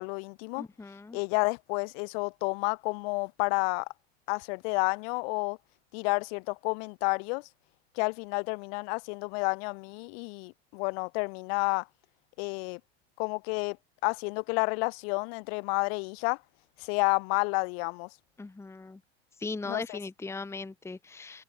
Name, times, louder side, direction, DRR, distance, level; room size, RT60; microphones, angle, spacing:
voice 1, 0.0-0.7 1.1-3.9 4.3-5.6 5.9-7.5 7.9-11.9 12.4-12.8 13.2-13.8 14.0-16.4 16.8-18.1 19.6-20.0, left 33 dB, 65° left, 2.6 m, -30 dB
voice 2, 0.6-1.2 18.4-19.0 19.4-21.4, left 3 dB, 10° left, 1.1 m, -39 dB
supercardioid pair, 105°, 32 cm